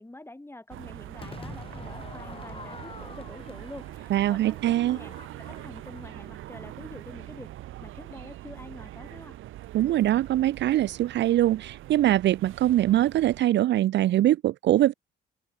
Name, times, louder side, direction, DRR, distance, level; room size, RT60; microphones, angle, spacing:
voice 1, 0.0-5.1 5.4-7.5 7.8-9.4, left 2 dB, 10° left, 5.5 m, -46 dB
sound 1, 0.7-13.4, right 15 dB, 85° right, 3.7 m, -43 dB
Crowd / Fireworks, 1.2-6.4, left 4 dB, 30° left, 2.9 m, -46 dB
voice 2, 4.1-5.0 9.7-14.9, right 13 dB, 65° right, 0.5 m, -23 dB
open air
cardioid pair, 90°, 20 cm